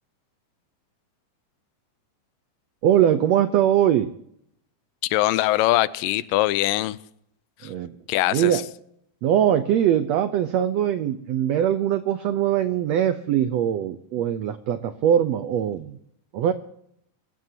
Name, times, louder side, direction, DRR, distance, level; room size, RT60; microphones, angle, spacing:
voice 1, 2.8-4.1 7.6-8.0 8.3-8.6 9.2-16.0 16.3-16.5, right 10 dB, 75° right, 1.5 m, -21 dB
voice 2, 5.0-7.0 7.6-7.7 8.1-8.6, left 16 dB, 85° left, 2.3 m, -22 dB
27.0 x 15.5 x 2.8 m
omnidirectional pair, 3.9 m